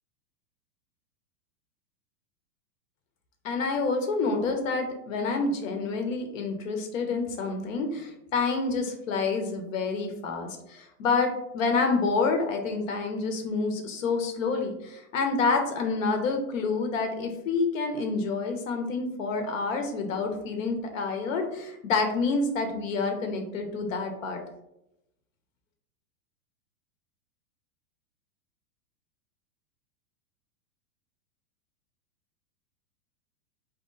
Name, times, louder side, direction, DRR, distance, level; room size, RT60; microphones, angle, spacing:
voice 1, 3.4-24.4, left 4 dB, 55° left, 4 dB, 0.8 m, -28 dB
4.0 x 3.0 x 3.7 m, 0.85 s
supercardioid pair, 165°, 47 cm